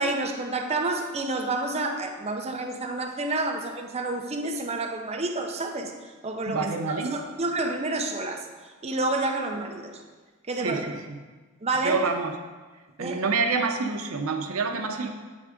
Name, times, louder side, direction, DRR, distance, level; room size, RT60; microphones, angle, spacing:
voice 1, 0.0-5.9 6.2-8.5 8.8-10.0 10.5-10.9 11.6-12.1 13.0-13.2, right 2 dB, 30° right, 3 dB, 0.6 m, -29 dB
voice 2, 6.5-7.1 10.5-11.2 11.8-12.3 13.0-15.1, right 4 dB, 85° right, 4 dB, 0.7 m, -27 dB
8.9 x 3.5 x 5.0 m, 1.3 s
head